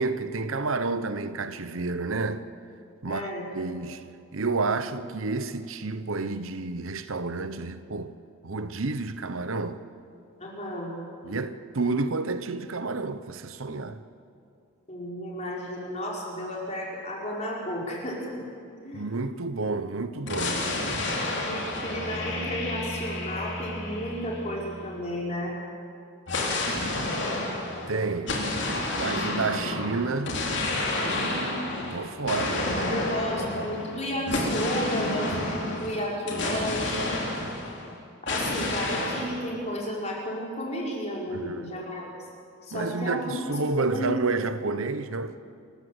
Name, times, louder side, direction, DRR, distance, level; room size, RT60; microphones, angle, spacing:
voice 1, 0.0-2.4 3.0-8.1 8.4-9.8 11.2-14.0 18.9-20.6 27.9-28.3 28.9-30.4 31.9-32.7 41.3-41.7 42.7-45.4, right 3 dB, 70° right, 0.9 m, -30 dB
voice 2, 3.0-3.5 10.4-11.0 14.9-18.4 18.7-19.0 21.4-25.5 26.3-27.4 31.0-31.5 32.9-37.2 38.2-42.1 42.6-43.2 43.8-44.1, equal, 30° left, 4.6 m, -33 dB
sound 1, 20.3-25.0 26.3-37.9 38.3-39.3, left 2 dB, 55° left, 3.7 m, -30 dB
29.0 x 14.5 x 7.9 m
head